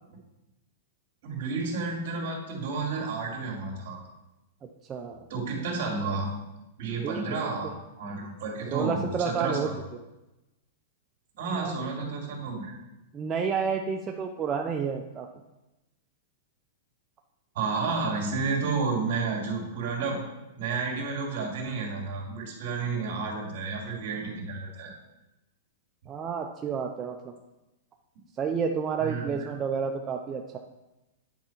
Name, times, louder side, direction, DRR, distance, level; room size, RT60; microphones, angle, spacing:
voice 1, 1.2-4.0 5.3-6.3 6.8-7.7 8.0-9.7 11.4-12.8 17.5-20.2 20.6-24.9 29.0-29.5, right 4 dB, 55° right, 0 dB, 2.2 m, -31 dB
voice 2, 4.9-5.2 7.0-7.8 8.7-10.0 11.5-11.8 13.1-15.3 26.1-27.3 28.4-30.6, right 6 dB, 20° right, 3 dB, 0.5 m, -30 dB
9.2 x 4.6 x 4.4 m, 0.98 s
supercardioid pair, 150°, 0 cm